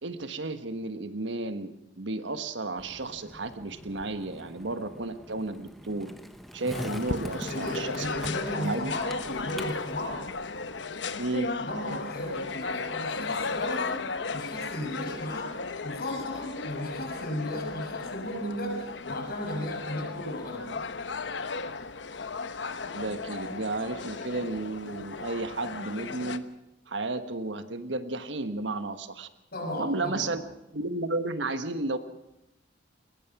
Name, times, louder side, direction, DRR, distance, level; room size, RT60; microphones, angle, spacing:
voice 1, 0.0-6.1 6.5-8.1 8.6-9.0 11.2-11.5 22.9-26.4 26.9-29.3 29.8-30.4 30.7-32.0, right 2 dB, 75° right, 9 dB, 1.4 m, -33 dB
Skateboard, 2.8-10.8, equal, ahead, 1.2 m, -44 dB
sound 1, 6.7-26.4, left 4 dB, 70° left, 1.0 m, -35 dB
voice 2, 7.5-10.3 11.6-20.8 29.5-30.4, left 1 dB, 55° left, 2 dB, 6.8 m, -35 dB
22.0 x 20.0 x 6.0 m, 0.87 s
head